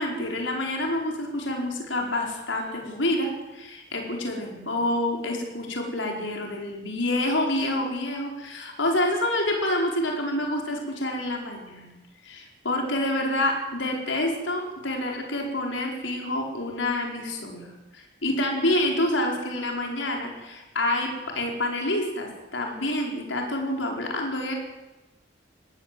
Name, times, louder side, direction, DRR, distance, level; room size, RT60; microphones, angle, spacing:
voice 1, 0.0-11.9 12.2-24.5, left 1 dB, 75° left, 1 dB, 5.0 m, -28 dB
22.0 x 18.0 x 7.9 m, 1.1 s
head